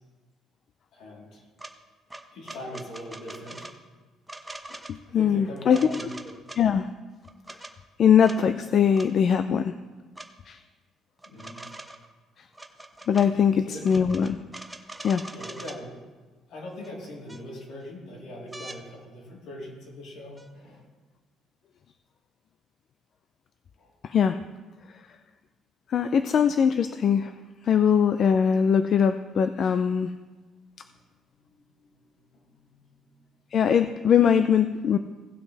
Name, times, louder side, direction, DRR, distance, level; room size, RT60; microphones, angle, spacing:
voice 1, 0.9-1.4 2.3-3.7 5.1-6.1 11.3-11.6 13.3-13.9 15.3-15.9 16.5-20.8 23.8-23.9 32.3-33.1, left 1 dB, 70° left, -4 dB, 3.5 m, -41 dB
sound 1, 1.6-1.7 2.1-3.7 4.3-4.9 5.7-6.6 7.2-7.7 8.2-8.4 8.9-9.1 10.2-10.3 11.2-12.1 12.5-13.3 13.8-15.8 16.8-16.9 17.3-17.8 18.5-18.8 20.4-20.5, right 2 dB, 10° right, 0.7 m, -42 dB
voice 2, 4.7-5.9 6.6-6.9 8.0-9.7 10.5-10.6 13.1-14.4 15.0-15.2 24.0-24.4 25.9-27.3 27.7-30.1 33.5-35.0, left 7 dB, 45° left, 10 dB, 0.4 m, -21 dB
17.5 x 6.1 x 3.3 m, 1.3 s
cardioid pair, 140°, 0 cm